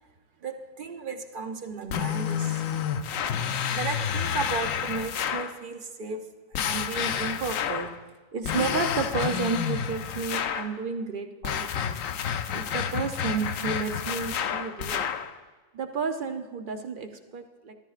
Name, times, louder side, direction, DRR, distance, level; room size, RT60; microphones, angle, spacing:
voice 1, 0.4-2.6 3.3-3.4 3.7-6.3 6.5-7.9 8.3-12.0 12.5-15.1 15.7-17.7, right 5 dB, 55° right, 6 dB, 0.6 m, -32 dB
sound 1, 1.9-5.6 6.5-8.0 8.4-10.7 11.4-15.3, left 8 dB, 75° left, 1.0 m, -29 dB
14.0 x 13.0 x 2.4 m, 1.3 s
omnidirectional pair, 1.4 m